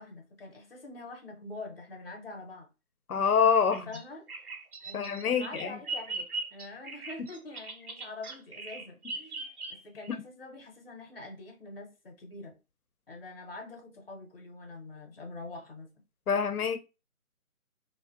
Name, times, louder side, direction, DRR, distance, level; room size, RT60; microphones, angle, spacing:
voice 1, 0.0-2.7 3.7-4.3 4.8-12.6 13.1-15.9, left 2 dB, 40° left, 0.6 m, -45 dB
voice 2, 3.1-3.9 4.9-5.7 16.3-16.8, left 6 dB, 80° left, 0.6 m, -25 dB
Bird vocalization bird call bird song, 3.5-10.1, right 3 dB, 85° right, 0.7 m, -40 dB
2.5 x 2.1 x 2.4 m
figure-of-eight pair, 160°, 44 cm